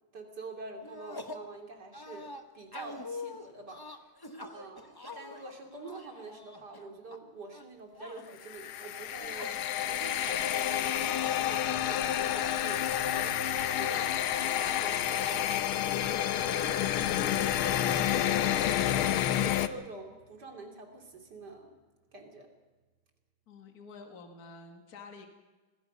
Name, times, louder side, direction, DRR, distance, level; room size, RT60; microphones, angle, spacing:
voice 1, 0.1-4.1 4.4-9.6 9.9-15.5 16.1-17.7 18.0-18.7 19.4-21.8 22.1-22.5, right 3 dB, 50° right, 3 dB, 3.4 m, -46 dB
sound 1, 0.8-1.5 1.9-7.2 7.5-8.4 9.0-9.6 10.0-10.1 10.3-11.3 12.3-12.6, left 2 dB, 15° left, 0.8 m, -45 dB
sound 2, 8.4-19.7, left 11 dB, 90° left, 1.7 m, -29 dB
sound 3, 10.9-21.8 22.1-22.2, right 6 dB, 90° right, 3.9 m, -53 dB
voice 2, 23.5-25.3, left 4 dB, 45° left, 4 dB, 2.2 m, -49 dB
26.0 x 19.0 x 5.4 m, 1.3 s
omnidirectional pair, 2.3 m